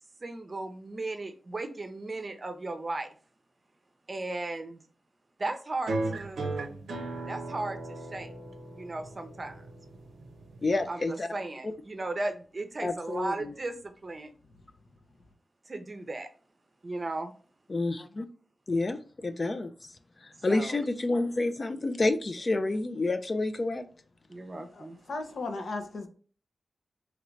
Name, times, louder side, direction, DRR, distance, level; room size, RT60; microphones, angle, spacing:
voice 1, 0.2-3.1 4.1-4.8 5.4-6.5 7.3-8.3 8.7-9.6 10.9-14.3 15.7-16.3 16.8-17.3 20.5-20.8 24.3-25.0, right 2 dB, 40° right, 8 dB, 0.6 m, -36 dB
sound 1, 5.9-10.9, right 2 dB, 90° right, 0.5 m, -37 dB
voice 2, 10.6-11.3 12.8-13.5 17.7-18.3 18.7-19.7 20.2-23.9, left 2 dB, 40° left, 9 dB, 0.3 m, -29 dB
voice 3, 24.7-26.1, left 3 dB, 75° left, 5 dB, 0.7 m, -36 dB
3.1 x 2.5 x 3.1 m, 0.40 s
cardioid pair, 65°, 0 cm